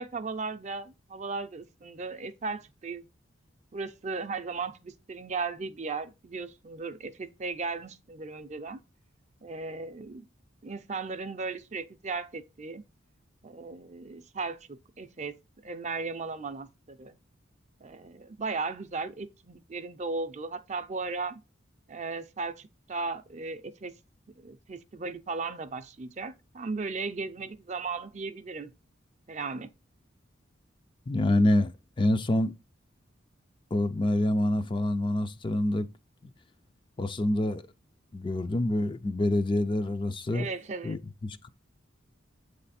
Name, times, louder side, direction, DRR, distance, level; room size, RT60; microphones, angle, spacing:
voice 1, 0.0-3.1 3.7-8.8 9.4-10.2 10.6-12.8 13.4-15.3 15.6-17.2 17.8-21.4 21.9-23.9 24.4-28.7 29.3-29.7 40.3-41.0, right 4 dB, 35° right, 0.5 m, -36 dB
voice 2, 31.1-31.7 32.0-32.5 33.7-35.9 37.0-37.7 38.1-40.5 40.8-41.5, left 1 dB, 25° left, 0.4 m, -26 dB
8.1 x 3.3 x 4.1 m
head